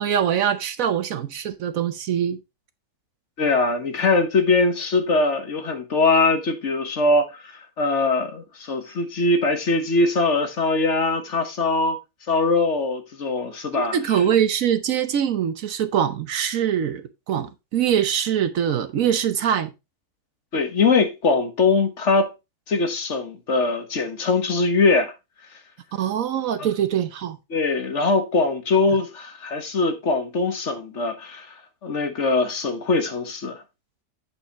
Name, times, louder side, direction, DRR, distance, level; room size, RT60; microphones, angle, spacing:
voice 1, 0.0-2.4 13.7-19.7 26.0-27.4, right 9 dB, 65° right, 1.1 m, -23 dB
voice 2, 3.4-7.5 7.8-12.0 12.3-14.0 20.5-22.3 22.7-25.1 26.6-26.7 27.5-31.5 31.8-33.6, left 3 dB, 50° left, 1.4 m, -22 dB
8.1 x 6.9 x 2.9 m
omnidirectional pair, 1.6 m